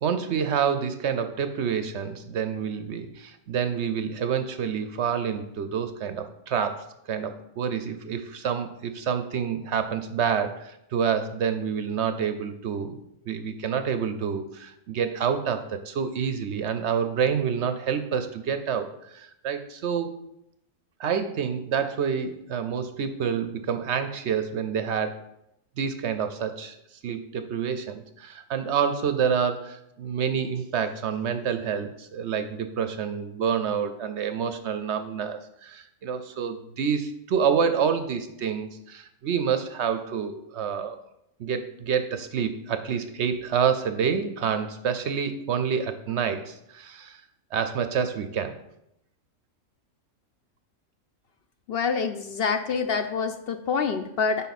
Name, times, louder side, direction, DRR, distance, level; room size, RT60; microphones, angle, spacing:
voice 1, 0.0-13.0 13.3-20.1 21.0-25.2 25.8-26.8 27.0-41.0 41.4-47.2 47.5-48.5, right 7 dB, 65° right, 9 dB, 0.8 m, -28 dB
voice 2, 51.7-54.5, left 5 dB, 65° left, 8 dB, 0.6 m, -26 dB
8.3 x 5.6 x 4.1 m, 0.80 s
omnidirectional pair, 1.5 m